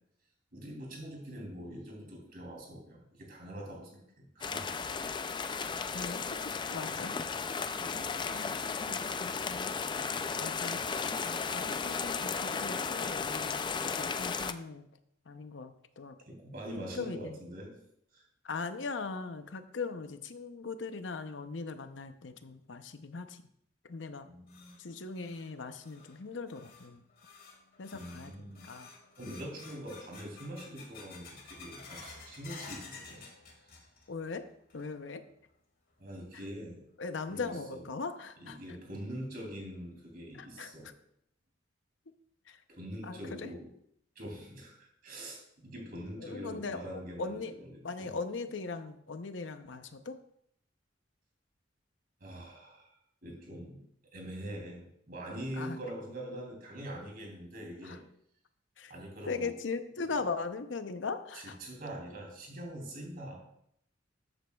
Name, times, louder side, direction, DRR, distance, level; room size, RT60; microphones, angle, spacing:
voice 1, 0.5-4.8 7.8-8.4 16.3-17.7 18.1-18.2 24.2-24.8 27.9-28.7 29.2-33.2 33.6-33.7 36.0-36.8 37.3-37.8 38.4-40.9 42.7-43.7 44.1-44.8 45.0-48.1 52.2-52.9 53.2-53.8 54.1-58.0 58.9-59.5 60.1-60.2 61.6-63.4, equal, 50° right, -1 dB, 2.9 m, -44 dB
sound 1, 4.4-14.5, left 5 dB, 25° left, 0.3 m, -35 dB
voice 2, 5.9-7.2 8.3-8.6 8.9-9.8 10.4-10.8 11.5-13.6 14.0-14.9 15.3-16.2 16.9-17.4 18.4-23.4 23.8-24.3 24.8-27.1 27.8-28.9 34.1-34.5 34.7-35.2 36.3-36.4 37.0-38.6 40.4-40.9 42.5-42.6 43.0-43.5 46.2-47.5 47.8-50.2 55.5-55.8 57.8-58.0 58.8-58.9 59.2-61.6, left 4 dB, 75° left, 9 dB, 0.7 m, -39 dB
sound 2, 24.1-34.2 34.5-35.1 35.5-35.6 36.3-36.4 38.0-38.1 38.6-38.7 39.2-39.3 39.7-39.8 40.4-40.7, left 4 dB, 55° left, 2.0 m, -52 dB
13.0 x 8.1 x 2.3 m, 0.72 s
head